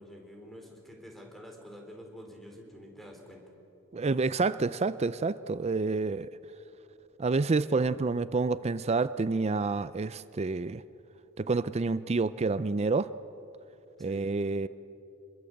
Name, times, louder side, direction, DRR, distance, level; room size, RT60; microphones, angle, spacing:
voice 1, 0.0-3.4 14.0-14.4, equal, ahead, 1 dB, 4.1 m, -48 dB
voice 2, 3.9-6.3 7.2-10.8 11.4-13.1 14.0-14.7, right 3 dB, 30° right, 15 dB, 0.5 m, -28 dB
26.5 x 22.0 x 8.0 m, 2.8 s
head